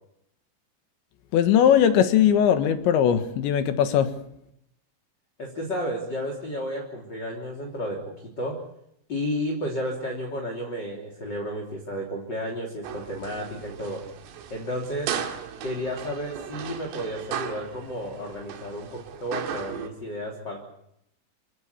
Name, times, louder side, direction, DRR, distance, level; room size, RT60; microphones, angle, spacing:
voice 1, 1.3-4.1, left 9 dB, 70° left, 9 dB, 3.5 m, -19 dB
voice 2, 5.4-8.6 9.1-14.1 14.5-15.1 15.6-20.6, equal, 25° left, 0 dB, 3.1 m, -32 dB
sound 1, 12.8-19.9, right 8 dB, 80° right, 4.6 m, -36 dB
28.0 x 17.0 x 8.4 m, 0.77 s
omnidirectional pair, 5.8 m